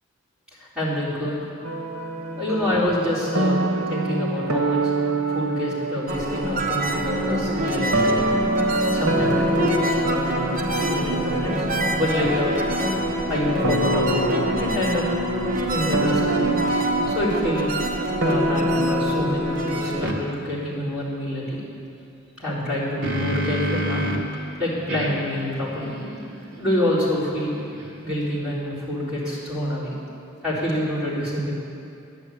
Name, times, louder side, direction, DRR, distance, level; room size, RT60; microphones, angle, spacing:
voice 1, 0.6-1.4 2.4-4.8 5.3-8.2 8.9-12.5 13.3-15.0 15.7-16.4 17.1-17.7 18.2-21.6 22.4-24.0 24.6-26.0 26.6-27.5 28.0-29.9 30.4-31.5, left 1 dB, 5° right, -10 dB, 4.0 m, -27 dB
sound 1, 1.6-20.1, right 2 dB, 85° right, 1.4 m, -26 dB
sound 2, 6.1-20.1, equal, 40° right, 1.0 m, -26 dB
sound 3, 20.0-20.2 22.6-24.4 24.9-28.2, equal, 55° right, 1.5 m, -30 dB
11.0 x 9.9 x 8.4 m, 2.6 s
head